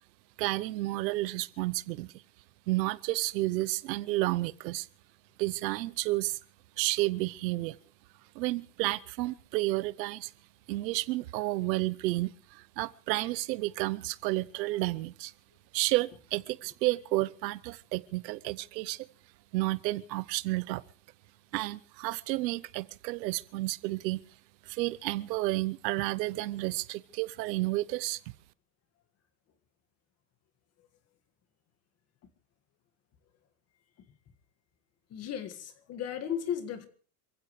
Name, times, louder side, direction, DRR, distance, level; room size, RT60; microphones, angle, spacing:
voice 1, 0.4-2.1 2.7-4.9 5.4-6.4 6.8-7.8 8.3-10.3 10.7-15.3 15.7-19.0 19.5-20.8 21.5-24.2 24.7-28.2, right 19 dB, 85° right, 0.9 m, -31 dB
voice 2, 35.1-36.9, left 9 dB, 30° left, 1.9 m, -35 dB
27.5 x 15.5 x 3.2 m
supercardioid pair, 160°, 49 cm